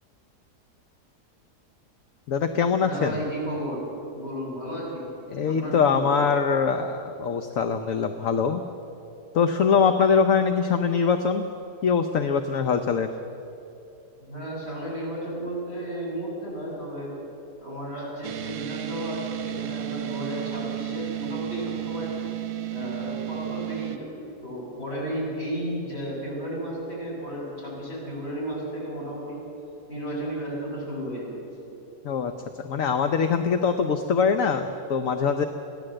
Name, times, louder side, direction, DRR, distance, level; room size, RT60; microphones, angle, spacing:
voice 1, 2.3-3.2 5.3-8.6 9.3-11.5 11.8-13.1 32.0-35.4, left 6 dB, 60° left, 7 dB, 1.1 m, -23 dB
voice 2, 2.9-3.9 4.2-5.1 5.5-6.2 14.2-17.1 17.6-22.1 22.7-29.4 29.9-31.4, right 1 dB, 40° left, -4 dB, 7.0 m, -33 dB
sound 1, 18.2-24.0, right 16 dB, 65° right, 1.1 m, -33 dB
23.0 x 15.5 x 7.7 m, 2.9 s
omnidirectional pair, 1.7 m